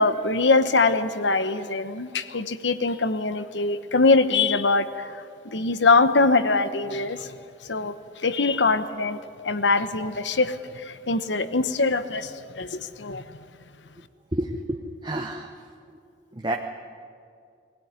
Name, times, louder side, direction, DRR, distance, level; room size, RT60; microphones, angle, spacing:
voice 1, 0.0-7.3 7.7-9.2 9.4-13.2, left 3 dB, 80° left, 11 dB, 1.0 m, -23 dB
voice 2, 14.3-15.5 16.3-16.6, right 1 dB, 25° right, 3 dB, 0.9 m, -29 dB
21.5 x 16.0 x 9.7 m, 2.3 s
head